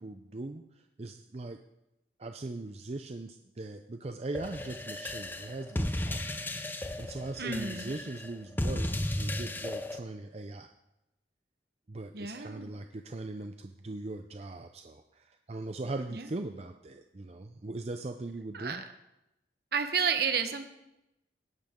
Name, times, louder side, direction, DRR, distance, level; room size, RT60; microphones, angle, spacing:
voice 1, 0.0-1.6 2.2-6.2 7.0-10.7 11.9-18.8, right 2 dB, 35° right, 6 dB, 0.5 m, -40 dB
sound 1, 4.3-10.0, left 1 dB, 10° left, 0.6 m, -35 dB
voice 2, 7.4-7.9 12.1-12.7 16.1-16.3 18.5-18.8 19.7-20.7, right 6 dB, 60° right, 8 dB, 1.1 m, -31 dB
17.0 x 11.5 x 3.7 m, 0.90 s
head